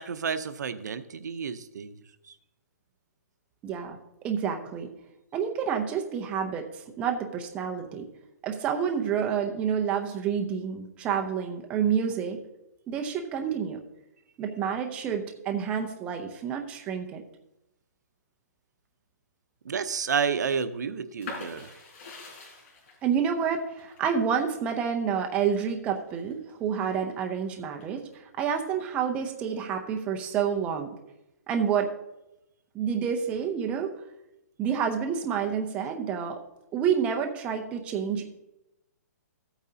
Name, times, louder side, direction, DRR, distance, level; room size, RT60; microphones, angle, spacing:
voice 1, 0.0-2.0 19.7-21.7, right 6 dB, 75° right, 12 dB, 0.7 m, -30 dB
voice 2, 3.6-4.0 4.2-4.9 5.3-8.1 8.4-12.4 12.9-13.8 14.4-17.2 23.0-28.1 28.4-30.9 31.5-31.9 32.7-33.9 34.6-36.4 36.7-38.3, right 7 dB, 10° right, 3 dB, 0.6 m, -29 dB
sound 1, 21.2-26.8 27.3-28.1, left 3 dB, 45° left, 4.4 m, -44 dB
14.0 x 8.9 x 2.8 m, 0.89 s
hypercardioid pair, 170°, 9 cm